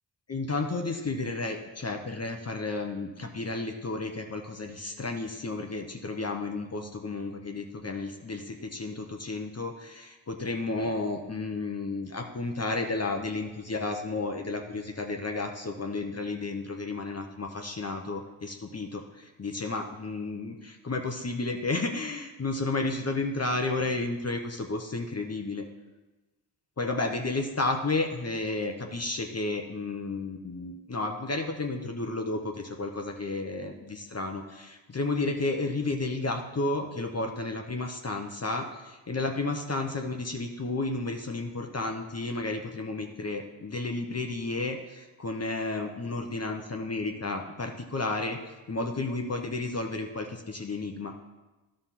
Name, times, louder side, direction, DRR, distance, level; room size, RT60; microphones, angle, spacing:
voice 1, 0.3-25.7 26.8-51.1, left 3 dB, 30° left, 3 dB, 0.9 m, -32 dB
11.0 x 3.8 x 5.8 m, 1.1 s
cardioid pair, 50°, 49 cm